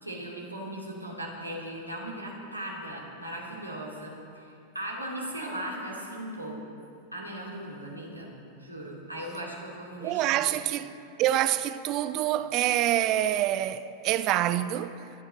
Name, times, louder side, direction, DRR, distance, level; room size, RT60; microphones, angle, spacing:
voice 1, 0.0-4.5 4.7-6.6 7.1-8.3 8.6-10.5, right 1 dB, 85° right, 2.5 m, -38 dB
voice 2, 10.0-10.9 11.2-15.0, right 13 dB, 40° right, 0.5 m, -26 dB
24.0 x 8.5 x 4.2 m
figure-of-eight pair, 90°, 0 cm